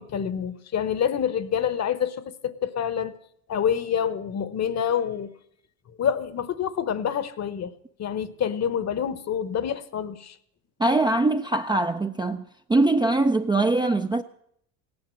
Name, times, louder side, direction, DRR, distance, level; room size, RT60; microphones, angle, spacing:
voice 1, 0.0-3.1 3.5-5.3 6.0-7.7 8.0-10.3, left 8 dB, 35° left, 1.0 m, -27 dB
voice 2, 10.8-12.4 12.7-14.2, right 2 dB, 10° right, 0.5 m, -22 dB
16.0 x 9.7 x 7.6 m
supercardioid pair, 90°, 44 cm